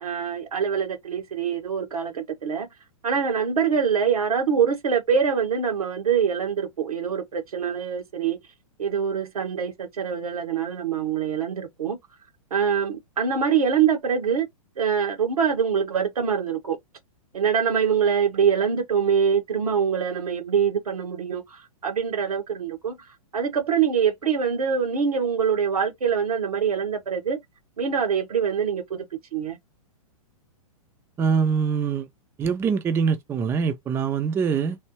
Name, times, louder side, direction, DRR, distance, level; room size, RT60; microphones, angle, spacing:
voice 1, 0.0-2.7 3.0-8.4 8.8-12.0 12.5-14.5 14.8-16.8 17.3-23.0 23.3-27.4 27.8-29.0 29.3-29.6, right 7 dB, 85° right, 1.4 m, -24 dB
voice 2, 31.2-32.1 32.4-34.8, right 6 dB, 15° right, 0.4 m, -23 dB
3.3 x 2.7 x 2.8 m
hypercardioid pair, 125°, 18 cm